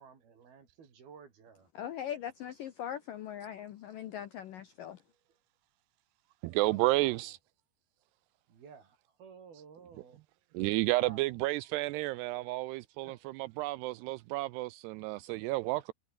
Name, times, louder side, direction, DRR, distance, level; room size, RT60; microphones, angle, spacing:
voice 1, 0.0-1.7 5.1-5.4 6.7-7.3 8.5-10.2 10.5-11.2 13.0-13.3 15.7-15.8, right 6 dB, 55° right, 5.8 m, -54 dB
voice 2, 1.8-5.0, left 10 dB, 70° left, 2.1 m, -40 dB
voice 3, 6.4-7.4 10.5-15.9, right 20 dB, 90° right, 2.3 m, -31 dB
omnidirectional pair, 5.4 m